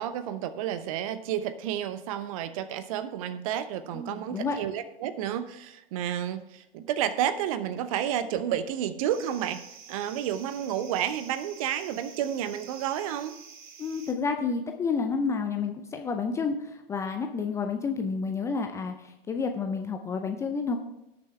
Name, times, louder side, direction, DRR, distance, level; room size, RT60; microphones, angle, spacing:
voice 1, 0.0-13.3, right 10 dB, 35° right, 14 dB, 0.7 m, -31 dB
voice 2, 3.9-4.6 13.8-20.8, left 5 dB, 10° left, 4 dB, 0.5 m, -30 dB
sound 1, 9.1-14.1, right 6 dB, 50° right, 1.7 m, -48 dB
17.5 x 6.7 x 3.3 m, 0.88 s
figure-of-eight pair, 110°, 30 cm